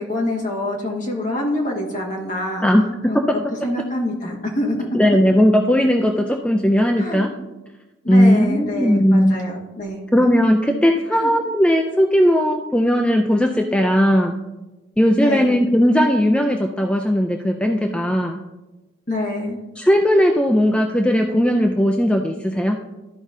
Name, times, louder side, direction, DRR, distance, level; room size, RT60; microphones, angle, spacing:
voice 1, 0.0-2.6 3.1-3.2 3.6-4.8 7.0-7.2 8.0-10.0 11.1-11.3 15.2-15.5 19.1-19.6, left 1 dB, 40° left, -2 dB, 1.5 m, -26 dB
voice 2, 4.9-7.3 8.1-9.3 10.1-14.4 15.0-18.4 19.8-22.8, equal, 5° left, 3 dB, 0.3 m, -17 dB
12.5 x 5.0 x 2.6 m, 1.1 s
head